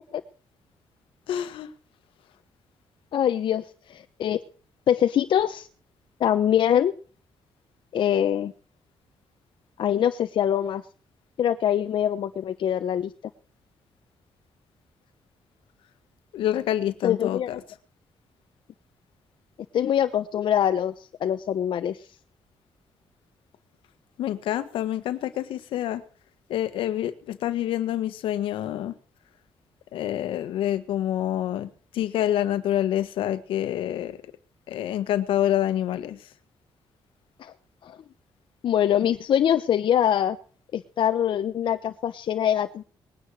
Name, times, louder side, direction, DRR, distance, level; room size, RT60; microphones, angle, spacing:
voice 1, 1.3-1.7 16.3-17.6 24.2-26.0 26.5-28.9 29.9-34.2 34.7-36.2, left 11 dB, 85° left, 12 dB, 1.6 m, -27 dB
voice 2, 3.1-4.4 4.9-5.7 6.2-6.9 7.9-8.5 9.8-10.8 11.4-13.1 17.0-17.5 19.7-22.0 37.4-37.5 37.8-38.0 38.6-40.4 40.7-42.8, left 10 dB, 70° left, 7 dB, 1.1 m, -23 dB
20.5 x 9.9 x 6.5 m, 0.41 s
supercardioid pair, 65°, 9 cm